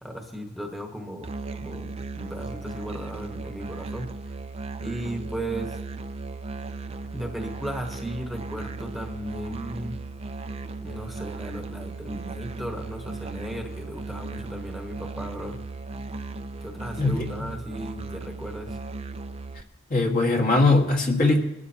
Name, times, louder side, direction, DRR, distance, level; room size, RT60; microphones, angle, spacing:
voice 1, 0.0-1.3 1.6-4.1 4.8-5.8 7.1-10.0 10.8-15.6 16.6-18.8, right 1 dB, ahead, 2 dB, 1.3 m, -36 dB
Musical instrument, 1.2-19.6, right 3 dB, 30° right, 0.6 m, -36 dB
voice 2, 17.0-17.3 19.9-21.4, left 2 dB, 45° left, 2 dB, 1.8 m, -20 dB
20.5 x 13.0 x 2.9 m, 0.93 s
head